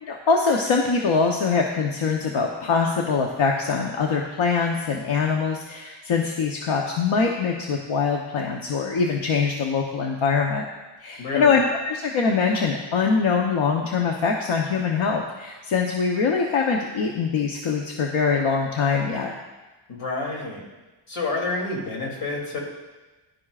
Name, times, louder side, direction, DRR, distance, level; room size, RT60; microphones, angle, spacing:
voice 1, 0.0-10.6 11.0-19.3, left 5 dB, 70° left, 0 dB, 1.1 m, -23 dB
voice 2, 11.2-11.6 19.9-20.6 21.1-22.6, left 3 dB, 90° left, -1 dB, 3.1 m, -29 dB
16.0 x 11.5 x 2.5 m, 1.2 s
cardioid pair, 85°, 49 cm